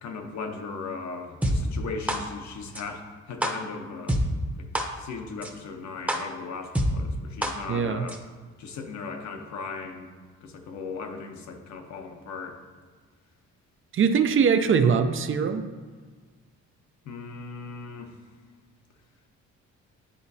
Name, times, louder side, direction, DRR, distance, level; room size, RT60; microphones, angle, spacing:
voice 1, 0.0-4.2 4.6-4.7 5.0-8.2 8.6-10.1 10.4-12.6 17.0-18.1, left 4 dB, 65° left, 4 dB, 0.9 m, -37 dB
sound 1, 1.4-1.5 2.1-2.2 2.8-2.9 3.4-3.5 4.1-4.2 4.8-4.9 5.4-5.5 6.1-6.2 6.8-6.9 7.4-7.5 8.1-8.2, right 1 dB, 5° right, 0.8 m, -25 dB
voice 2, 7.7-8.1 13.9-15.7, right 6 dB, 45° right, 9 dB, 0.5 m, -22 dB
9.9 x 3.8 x 2.7 m, 1.5 s
cardioid pair, 90°, 30 cm